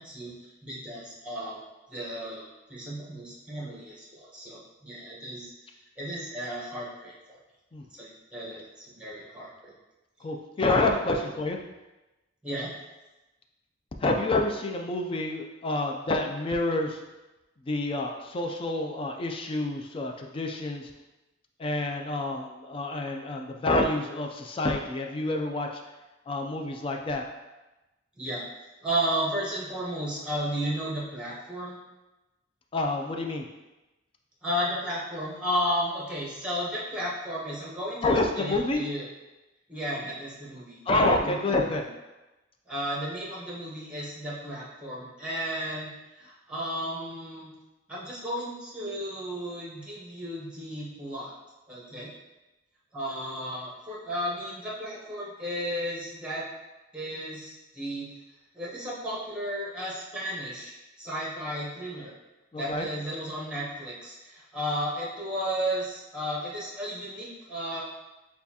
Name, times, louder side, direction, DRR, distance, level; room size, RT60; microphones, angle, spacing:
voice 1, 0.0-1.6 1.9-5.5 6.0-7.4 8.0-9.7 11.1-11.2 12.4-12.7 28.2-31.8 34.4-39.1 39.7-40.8 41.2-41.7 42.7-47.5 47.9-51.3 51.7-52.1 52.9-56.5 56.9-58.1 58.5-62.1 62.6-67.8, equal, 5° right, -6 dB, 1.0 m, -34 dB
voice 2, 10.2-11.6 14.0-17.0 17.7-20.9 21.6-25.7 26.3-27.2 32.7-33.4 38.0-38.8 40.9-41.8 62.5-62.9, left 2 dB, 30° left, 2 dB, 0.4 m, -28 dB
6.6 x 2.3 x 2.8 m, 1.1 s
head